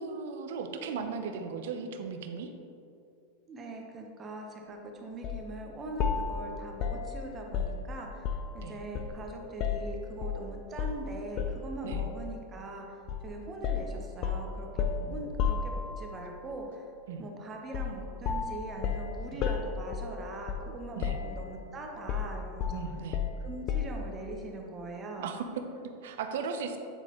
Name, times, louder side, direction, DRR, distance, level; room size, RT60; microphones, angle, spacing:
voice 1, 0.0-2.5 8.6-8.8 11.8-12.0 15.0-15.2 17.1-17.3 19.3-19.4 21.0-21.2 22.7-23.2 25.2-26.8, right 5 dB, 75° right, 6 dB, 0.6 m, -37 dB
voice 2, 3.5-16.9 17.2-22.8 23.4-25.4, right 2 dB, 25° right, 1 dB, 0.9 m, -42 dB
sound 1, 5.2-5.5 6.0-8.6 8.9-10.4 10.8-11.0 11.4-12.3 13.1-13.3 13.6-16.2 17.7-18.0 18.2-20.8 21.0-21.6 22.1-24.1, left 6 dB, 45° left, 0.4 m, -33 dB
8.0 x 4.0 x 3.0 m, 2.6 s
hypercardioid pair, 120°, 0 cm